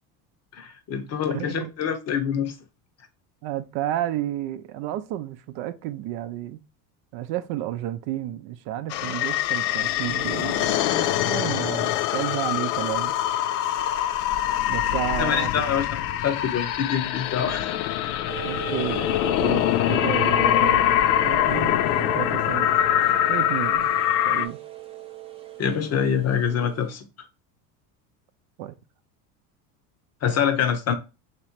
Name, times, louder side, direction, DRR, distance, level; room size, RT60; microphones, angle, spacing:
voice 1, 0.6-2.5 15.2-18.1 25.6-27.0 30.2-30.9, left 8 dB, 35° left, 0.7 m, -25 dB
voice 2, 1.3-1.7 3.4-6.6 7.1-13.2 14.7-15.5 18.4-19.1 19.4-20.9 21.2-22.7 23.1-23.9 24.3-24.6 28.6-28.8, right 13 dB, 60° right, 0.5 m, -31 dB
sound 1, 8.9-24.5, left 12 dB, 85° left, 0.5 m, -24 dB
sound 2, 18.3-26.9, right 13 dB, 15° right, 0.5 m, -38 dB
3.0 x 3.0 x 4.3 m
supercardioid pair, 105°, 45 cm